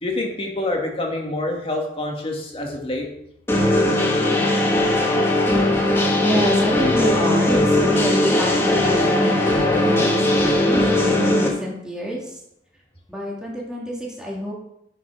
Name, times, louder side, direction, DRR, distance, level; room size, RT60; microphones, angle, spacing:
voice 1, 0.0-3.1, left 2 dB, 30° left, 1 dB, 2.0 m, -26 dB
sound 1, 3.5-11.5, left 1 dB, 15° left, 1.9 m, -19 dB
voice 2, 6.2-12.4 13.1-14.5, equal, 5° right, -4 dB, 2.5 m, -27 dB
10.0 x 5.9 x 5.9 m, 0.78 s
head